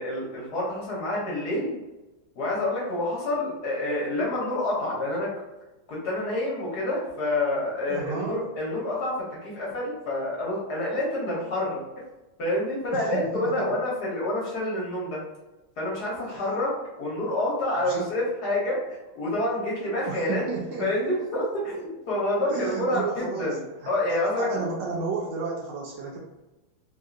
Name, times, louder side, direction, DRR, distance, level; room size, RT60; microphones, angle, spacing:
voice 1, 0.0-1.8 2.4-5.3 5.9-9.1 9.4-11.8 12.4-15.2 15.8-20.4 20.8-23.6 23.9-24.7, left 1 dB, 60° left, -5 dB, 1.3 m, -28 dB
voice 2, 7.9-8.5 12.9-13.7 16.3-16.4 17.8-18.1 20.0-20.9 22.5-23.6 23.8-26.2, right 4 dB, 75° right, -1 dB, 1.2 m, -33 dB
3.4 x 2.7 x 2.3 m, 1.1 s
omnidirectional pair, 2.3 m